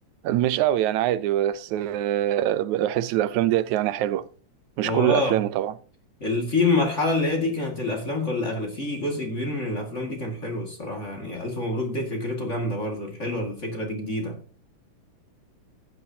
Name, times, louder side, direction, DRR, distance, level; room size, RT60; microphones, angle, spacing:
voice 1, 0.2-4.3 4.8-5.7, right 13 dB, 85° right, 2.0 m, -24 dB
voice 2, 4.8-5.4 6.2-14.4, left 2 dB, 25° left, 2.1 m, -27 dB
15.0 x 10.0 x 2.9 m
omnidirectional pair, 3.3 m